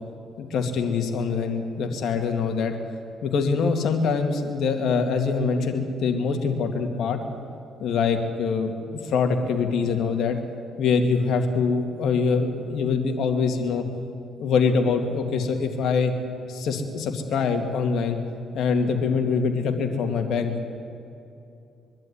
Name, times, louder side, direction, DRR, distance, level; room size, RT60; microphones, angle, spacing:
voice 1, 0.4-2.7 3.2-7.2 7.8-10.4 10.8-13.8 14.4-16.1 16.5-18.2 18.5-20.5, left 5 dB, 75° left, 4 dB, 2.3 m, -24 dB
23.0 x 12.0 x 9.8 m, 2.7 s
cardioid pair, 90°, 0 cm